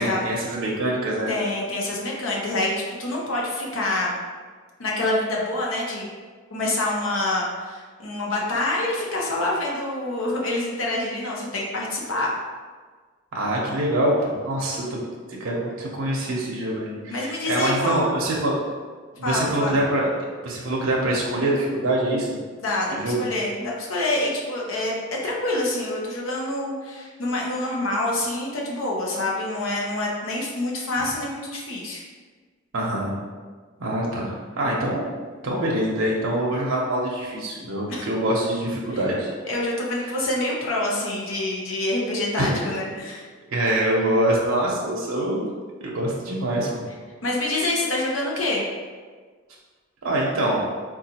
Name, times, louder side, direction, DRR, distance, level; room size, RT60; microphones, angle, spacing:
voice 1, 0.0-1.3 13.3-15.1 15.4-18.6 19.2-20.1 20.4-22.4 22.9-23.3 32.7-33.1 33.8-35.1 35.4-39.3 42.4-42.6 43.5-45.5 45.8-46.8 50.0-50.6, right 1 dB, 85° right, -4 dB, 0.6 m, -24 dB
voice 2, 1.3-2.7 3.0-4.1 4.8-6.1 6.5-12.3 17.1-18.0 19.2-19.8 22.5-32.0 37.9-38.1 39.4-43.3 47.2-48.6, left 2 dB, 85° left, -3 dB, 0.7 m, -26 dB
3.8 x 2.4 x 2.8 m, 1.5 s
head